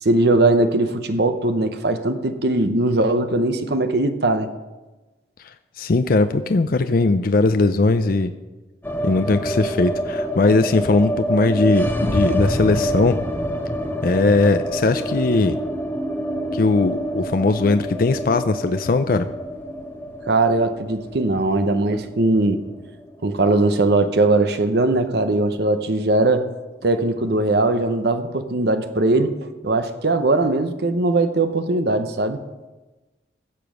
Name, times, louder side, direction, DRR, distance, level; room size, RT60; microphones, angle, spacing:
voice 1, 0.0-4.5 20.3-22.6 23.2-26.5 26.8-32.4, right 2 dB, 60° right, 9 dB, 0.9 m, -20 dB
voice 2, 5.8-8.3 9.0-13.2 14.0-15.6 16.5-19.3, left 3 dB, 50° left, 9 dB, 0.5 m, -19 dB
sound 1, 8.8-24.9 25.2-25.3 25.6-26.3, equal, 10° left, 1.2 m, -27 dB
15.5 x 6.9 x 6.3 m, 1.2 s
head